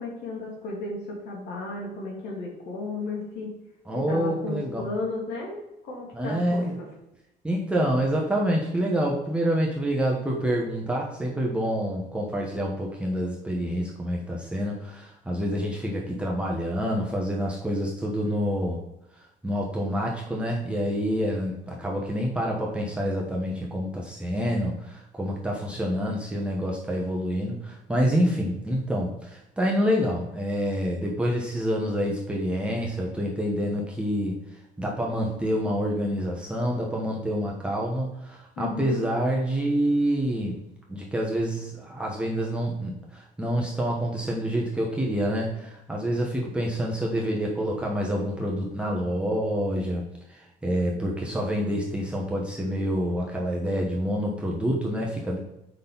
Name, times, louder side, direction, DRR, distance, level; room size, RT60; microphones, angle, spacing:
voice 1, 0.0-3.5 4.1-5.6 5.8-6.9 38.6-39.1, left 3 dB, 80° left, -1 dB, 2.6 m, -34 dB
voice 2, 3.9-4.8 6.1-6.7 7.4-18.8 19.4-34.4 34.8-40.6 40.9-55.4, equal, 5° right, -3 dB, 1.2 m, -27 dB
6.4 x 5.7 x 4.0 m, 0.87 s
cardioid pair, 110°, 17 cm